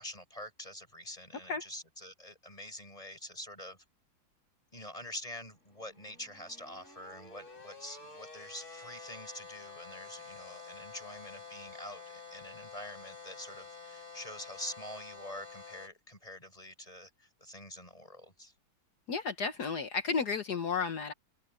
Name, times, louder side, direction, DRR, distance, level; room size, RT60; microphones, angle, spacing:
voice 1, 0.0-3.8 4.7-18.5, left 1 dB, 15° left, 8.1 m, -46 dB
sound 1, 5.8-15.9, left 4 dB, 40° left, 4.4 m, -49 dB
voice 2, 19.1-21.1, left 5 dB, 60° left, 1.7 m, -32 dB
omnidirectional pair, 2.1 m